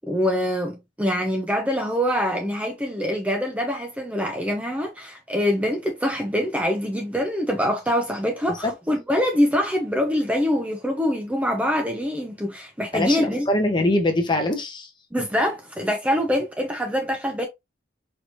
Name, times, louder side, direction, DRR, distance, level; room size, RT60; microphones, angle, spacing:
voice 1, 0.0-13.5 15.1-17.5, equal, 5° right, 0.5 m, -24 dB
voice 2, 12.9-14.9, left 1 dB, 25° left, 0.8 m, -23 dB
4.5 x 2.9 x 2.5 m
head